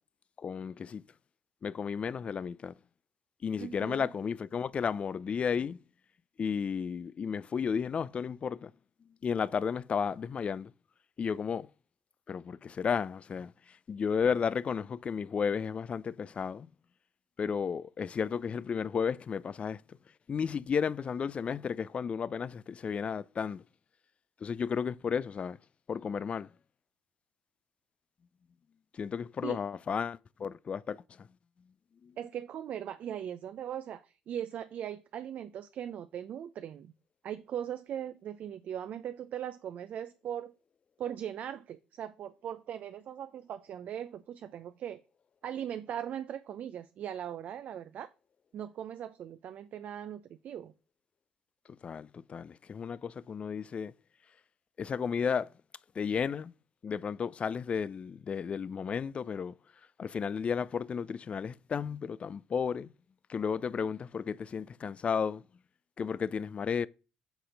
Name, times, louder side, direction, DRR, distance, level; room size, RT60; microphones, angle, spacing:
voice 1, 0.4-1.0 1.6-2.8 3.4-5.8 6.4-8.7 9.2-10.7 11.2-11.7 12.3-16.7 17.4-20.0 20.3-23.6 24.4-25.6 25.9-26.5 28.9-31.3 32.0-32.1 51.7-53.9 54.8-55.5 56.0-56.5 56.8-59.6 60.0-62.9 63.3-65.4 66.0-66.9, left 6 dB, 40° left, 0.4 m, -33 dB
voice 2, 3.6-4.1 29.4-29.6 32.2-36.9 37.2-40.5 41.0-45.0 45.4-48.1 48.5-50.7, right 9 dB, 60° right, 0.5 m, -39 dB
8.0 x 4.2 x 5.0 m
hypercardioid pair, 55°, 3 cm